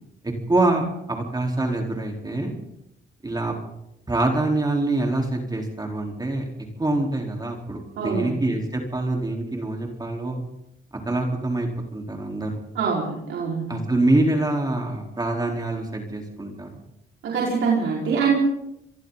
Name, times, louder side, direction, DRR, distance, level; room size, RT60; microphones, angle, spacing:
voice 1, 0.2-2.5 3.2-3.5 4.1-6.4 6.8-10.4 11.0-12.5 13.7-16.7, right 2 dB, 20° right, 1 dB, 4.2 m, -25 dB
voice 2, 8.0-8.4 12.8-13.7 17.2-18.4, right 5 dB, 75° right, -4 dB, 5.2 m, -24 dB
28.0 x 22.5 x 4.1 m, 0.82 s
cardioid pair, 90°, 20 cm